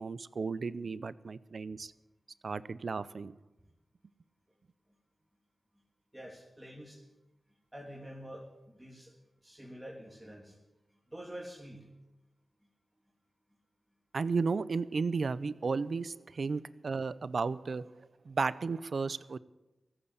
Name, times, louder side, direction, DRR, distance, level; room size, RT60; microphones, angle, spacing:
voice 1, 0.0-1.9 2.4-3.3 14.1-17.9 18.3-19.4, right 4 dB, 70° right, 17 dB, 0.6 m, -34 dB
voice 2, 6.1-7.0 7.7-8.5 8.7-9.1 9.4-10.6 11.1-11.9, equal, 15° right, -3 dB, 3.1 m, -47 dB
15.0 x 8.9 x 8.8 m, 1.0 s
cardioid pair, 50°, 0 cm